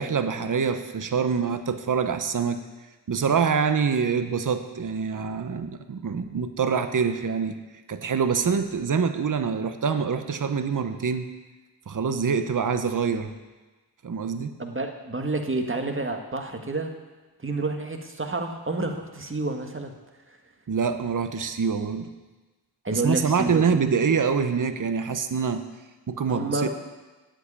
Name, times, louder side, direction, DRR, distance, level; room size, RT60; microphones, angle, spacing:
voice 1, 0.0-2.6 3.1-7.5 7.9-11.3 11.9-13.3 14.0-14.6 20.7-22.1 22.9-25.6 26.1-26.7, right 6 dB, 45° right, 9 dB, 1.0 m, -25 dB
voice 2, 14.6-16.9 17.4-19.9 22.8-23.8 26.3-26.7, right 2 dB, 30° right, 4 dB, 1.7 m, -29 dB
8.0 x 7.9 x 8.9 m, 1.2 s
cardioid pair, 40°, 43 cm